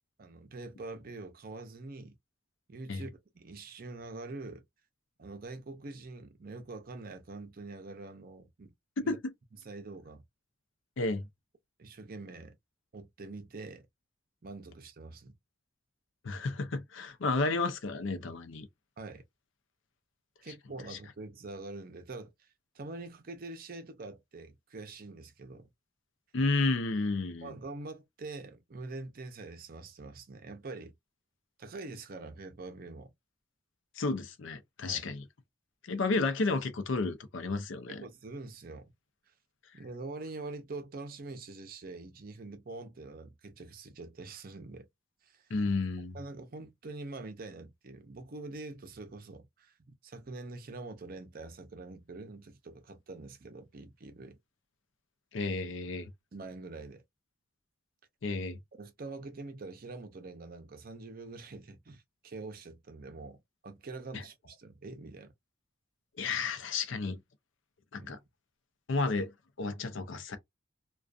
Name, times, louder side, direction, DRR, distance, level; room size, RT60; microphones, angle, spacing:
voice 1, 0.2-2.2 2.7-4.6 5.2-8.7 9.0-9.2 9.6-10.2 11.8-12.6 12.9-13.9 14.4-15.3 19.0-19.2 20.4-25.7 27.4-30.9 31.6-33.1 34.9-35.1 37.9-38.9 39.7-44.9 45.2-45.5 46.1-54.4 56.3-57.0 58.8-65.3 68.0-68.1, right 3 dB, 45° right, 0.5 m, -45 dB
voice 2, 16.2-18.7 20.9-21.0 26.3-27.5 34.0-35.2 35.8-38.1 45.5-46.2 55.3-56.1 58.2-58.6 64.1-64.2 66.2-67.2 67.9-68.2 68.9-70.4, left 3 dB, 70° left, 0.5 m, -32 dB
2.4 x 2.3 x 2.4 m
head